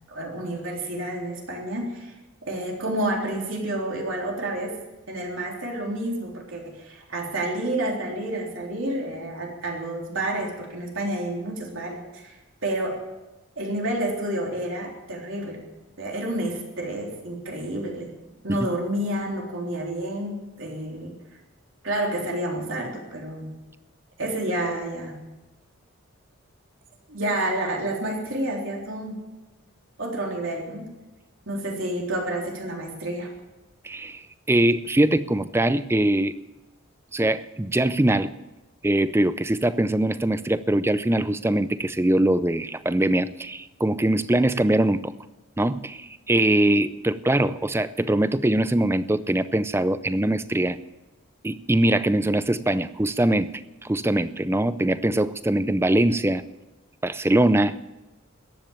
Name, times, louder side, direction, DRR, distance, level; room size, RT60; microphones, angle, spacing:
voice 1, 0.1-2.1 2.4-4.7 5.1-13.0 13.6-15.6 16.0-18.1 18.4-21.1 21.8-23.5 24.2-25.2 27.1-29.2 30.0-30.9 31.5-33.3, right 1 dB, 65° right, -1 dB, 3.6 m, -29 dB
voice 2, 33.8-36.4 37.1-38.3 38.8-45.1 45.6-50.8 51.4-53.5 53.8-56.4 57.0-57.8, right 1 dB, 10° right, 14 dB, 0.4 m, -22 dB
14.5 x 10.5 x 8.8 m, 1.1 s
head